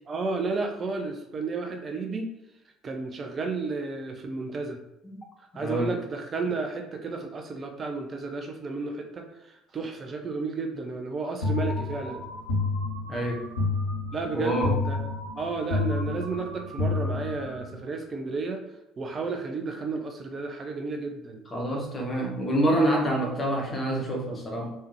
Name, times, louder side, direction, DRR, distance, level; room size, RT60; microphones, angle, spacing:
voice 1, 0.1-2.3 2.8-4.8 5.5-12.3 14.1-15.0 15.3-18.6 19.0-21.4, right 4 dB, 35° right, 4 dB, 0.5 m, -32 dB
voice 2, 5.5-5.9 13.1-13.5 14.3-14.8 21.5-24.7, right 1 dB, 30° left, 1 dB, 1.1 m, -26 dB
sound 1, 11.4-17.8, left 3 dB, 85° left, 0.8 m, -30 dB
3.5 x 3.3 x 3.0 m, 0.93 s
figure-of-eight pair, 55°, 0 cm